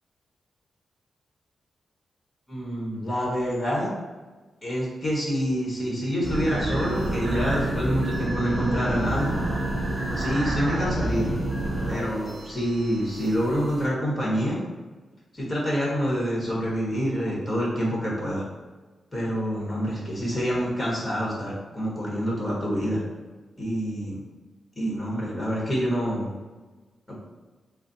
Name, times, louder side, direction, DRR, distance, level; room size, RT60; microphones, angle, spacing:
voice 1, 2.5-3.9 4.6-9.3 10.2-11.3 11.9-14.6 15.3-18.4 19.1-23.0 23.6-24.2 24.8-26.3, equal, 20° left, -5 dB, 1.1 m, -27 dB
sound 1, 6.2-13.9, right 1 dB, 20° right, 1.1 m, -29 dB
4.0 x 2.0 x 4.0 m, 1.3 s
wide cardioid pair, 140°, 0 cm